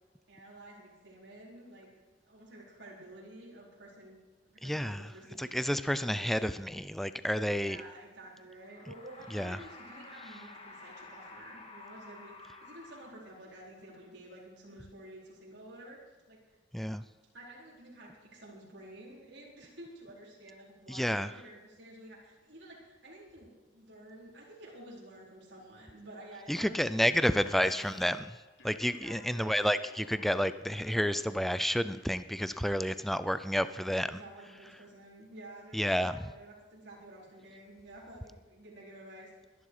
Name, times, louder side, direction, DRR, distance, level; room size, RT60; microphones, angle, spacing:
voice 1, 0.3-1.9 2.2-4.2 4.4-5.6 6.0-6.3 7.6-16.6 17.3-28.0 28.8-29.7 33.5-39.5, right 1 dB, 65° right, -5 dB, 4.5 m, -51 dB
voice 2, 4.6-5.1 5.4-7.8 9.3-9.6 16.7-17.0 20.9-21.3 26.5-28.2 28.6-34.2 35.7-36.2, equal, ahead, 13 dB, 0.4 m, -30 dB
sound 1, 8.5-13.6, left 3 dB, 35° left, 1.9 m, -51 dB
Alarm, 27.3-29.3 29.7-33.0, left 3 dB, 80° left, 2.7 m, -58 dB
21.0 x 11.0 x 4.9 m, 1.2 s
head